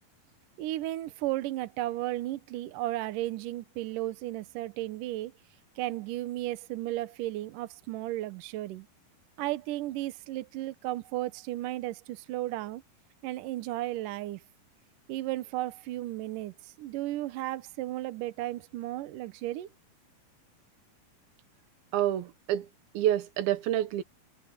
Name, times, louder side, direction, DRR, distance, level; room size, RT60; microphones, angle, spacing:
voice 1, 0.6-5.3 5.8-8.9 9.4-12.8 13.2-14.4 15.1-19.7, right 15 dB, 70° right, 2.4 m, -34 dB
voice 2, 21.9-22.7 22.9-24.0, right 12 dB, 90° right, 3.0 m, -28 dB
omnidirectional pair, 4.2 m